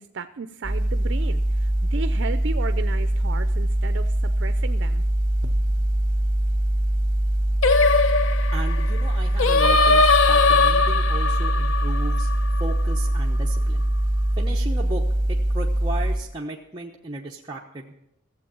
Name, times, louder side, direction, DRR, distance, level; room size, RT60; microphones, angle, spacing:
voice 1, 0.0-5.0 5.4-5.5, right 4 dB, 65° right, 10 dB, 0.5 m, -34 dB
sound 1, 0.6-16.2, right 1 dB, 45° right, 1.6 m, -23 dB
Singing, 7.6-12.9, left 4 dB, 80° left, 0.6 m, -20 dB
voice 2, 8.5-12.3 12.6-13.8 14.4-17.9, right 2 dB, 20° right, -2 dB, 1.0 m, -35 dB
15.5 x 7.7 x 8.7 m, 0.79 s
head